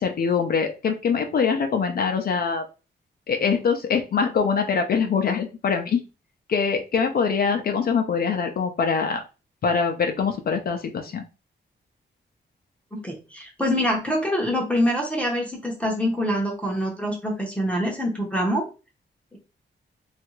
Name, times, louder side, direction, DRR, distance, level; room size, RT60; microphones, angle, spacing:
voice 1, 0.0-2.6 3.3-6.0 6.5-9.2 9.6-11.2, left 5 dB, 55° left, 4 dB, 0.5 m, -23 dB
voice 2, 12.9-18.7, equal, 5° left, -3 dB, 0.7 m, -25 dB
3.3 x 2.4 x 3.0 m, 0.31 s
wide cardioid pair, 150°, 19 cm